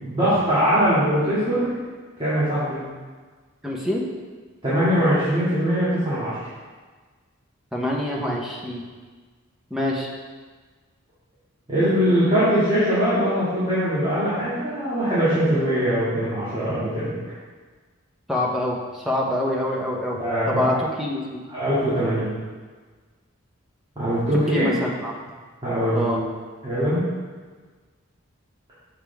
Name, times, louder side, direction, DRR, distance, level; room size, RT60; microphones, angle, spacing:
voice 1, 0.0-1.7 2.2-2.8 4.6-6.4 11.7-17.2 20.2-20.7 21.5-22.4 24.0-24.7 25.6-26.1 26.6-27.1, equal, 25° right, -13 dB, 2.2 m, -22 dB
voice 2, 3.6-4.0 7.7-8.9 9.7-10.1 18.3-20.2 20.5-21.4 24.5-25.1 25.9-26.2, left 1 dB, ahead, -3 dB, 0.9 m, -25 dB
7.5 x 6.7 x 3.5 m, 1.4 s
head